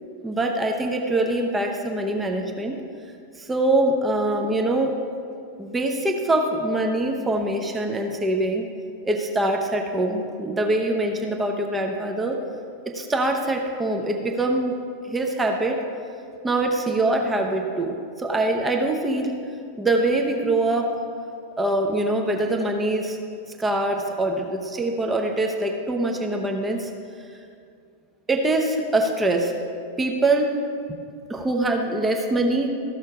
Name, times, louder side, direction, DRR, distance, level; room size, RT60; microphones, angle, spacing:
voice 1, 0.2-2.8 3.4-5.0 5.6-8.7 9.0-12.4 12.9-14.7 15.0-15.8 16.4-19.4 19.8-20.9 21.6-23.2 23.6-26.9 28.3-29.5 30.0-30.6 30.9-31.0 31.3-32.7, right 2 dB, 10° right, 2 dB, 0.8 m, -23 dB
13.5 x 6.6 x 4.8 m, 2.4 s
figure-of-eight pair, 90°, 0 cm